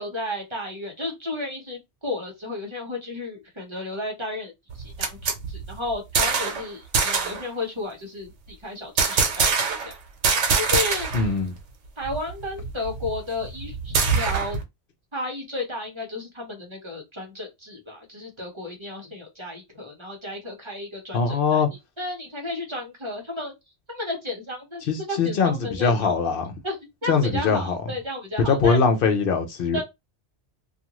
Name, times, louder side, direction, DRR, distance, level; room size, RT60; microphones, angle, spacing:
voice 1, 0.0-4.5 4.8-9.9 10.5-11.1 12.0-14.6 15.1-21.6 22.0-23.5 23.9-26.1 26.6-28.8 29.7-29.8, left 2 dB, 25° right, 0.9 m, -33 dB
sound 1, 4.7-6.6 6.9-7.4 9.0-9.9 10.2-11.3 11.6-11.7 12.0-14.6, right 5 dB, 90° right, 1.1 m, -24 dB
voice 2, 11.1-11.5 21.1-21.7 24.9-26.5 27.1-27.8 28.5-29.8, left 5 dB, 60° left, 0.7 m, -22 dB
2.5 x 2.4 x 2.9 m
omnidirectional pair, 1.2 m